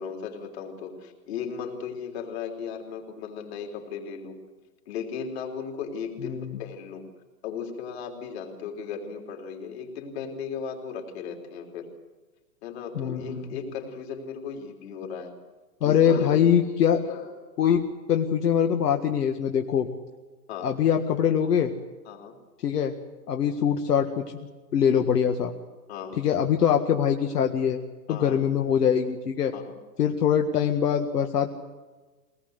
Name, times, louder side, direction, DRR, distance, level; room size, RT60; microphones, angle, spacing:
voice 1, 0.0-4.4 4.9-7.1 7.4-11.9 12.6-15.4 15.8-17.3 18.9-19.0 19.5-19.6 20.5-20.8 22.1-22.4 25.9-26.2 28.1-28.4 29.5-29.8, left 6 dB, 40° left, 3 dB, 3.7 m, -36 dB
voice 2, 6.2-6.6 13.0-13.6 15.8-17.0 17.6-17.8 18.1-19.9 20.6-21.7 22.6-22.9 23.3-24.2 24.7-25.5 26.2-27.8 28.1-29.5 30.0-31.5, left 8 dB, 70° left, 4 dB, 1.9 m, -23 dB
22.5 x 19.0 x 8.1 m, 1.3 s
hypercardioid pair, 165°, 49 cm